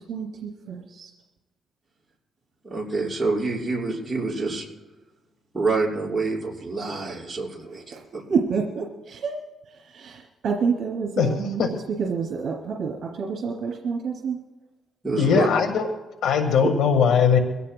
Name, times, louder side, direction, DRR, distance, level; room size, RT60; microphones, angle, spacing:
voice 1, 0.1-1.1 7.7-14.4, right 5 dB, 65° right, -1 dB, 2.5 m, -29 dB
voice 2, 2.6-4.7 5.5-8.2 15.0-15.5, right 3 dB, 20° right, -4 dB, 5.7 m, -27 dB
voice 3, 15.2-15.9 16.2-17.4, left 6 dB, 75° left, 5 dB, 1.6 m, -19 dB
24.0 x 16.5 x 2.3 m, 1.1 s
cardioid pair, 90°, 0 cm